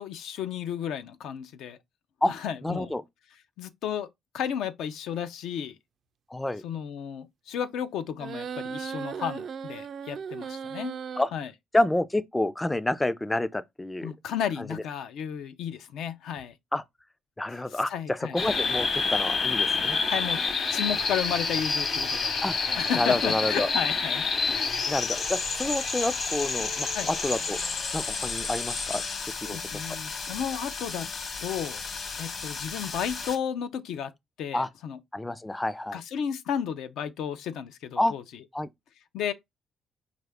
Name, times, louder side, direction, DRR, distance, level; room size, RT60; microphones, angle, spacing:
voice 1, 0.0-1.8 2.3-2.9 3.6-4.1 4.3-5.8 6.6-11.0 11.3-11.5 14.0-16.5 17.7-18.4 20.1-20.4 20.7-22.3 22.8-24.7 26.9-27.1 29.2-31.1 31.4-31.8 32.2-34.1 34.4-35.0 35.9-38.4 39.1-39.3, left 8 dB, 85° left, 0.4 m, -33 dB
voice 2, 2.6-3.0 6.3-6.6 11.2-11.3 11.7-14.1 16.7-16.8 17.4-20.0 22.4-23.7 24.9-27.6 27.9-29.0 29.5-29.6 34.5-34.7 35.1-36.0 38.0-38.1 38.5-38.7, left 1 dB, 10° left, 0.3 m, -28 dB
sound 1, 8.2-11.2, right 6 dB, 60° right, 0.3 m, -36 dB
sound 2, 18.4-33.4, left 4 dB, 50° left, 1.0 m, -29 dB
4.5 x 2.4 x 3.3 m
cardioid pair, 90°, 0 cm